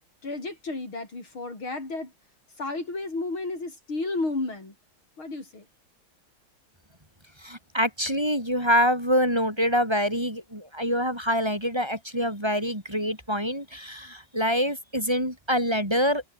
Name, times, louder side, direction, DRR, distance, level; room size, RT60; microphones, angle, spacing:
voice 1, 0.2-2.1 2.6-4.7 5.2-5.7, left 3 dB, 75° left, 7.4 m, -32 dB
voice 2, 7.4-16.2, equal, 10° right, 6.3 m, -25 dB
omnidirectional pair, 2.3 m